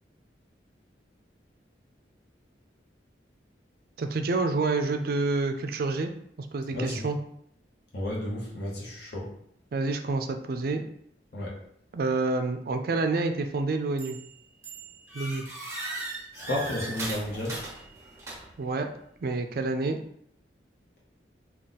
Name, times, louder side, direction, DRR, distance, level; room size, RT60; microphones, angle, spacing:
voice 1, 4.0-6.1 6.5-7.2 9.7-10.8 11.9-14.2 15.1-15.4 18.6-18.9 19.2-20.0, right 3 dB, 55° right, 7 dB, 0.4 m, -28 dB
voice 2, 6.7-7.0 7.9-9.3 11.3-11.5 16.5-17.5, left 1 dB, 60° left, -4 dB, 0.8 m, -32 dB
sound 1, 14.0-14.3 14.6-18.7, right 2 dB, 15° right, 0.9 m, -38 dB
3.7 x 2.3 x 4.0 m, 0.70 s
head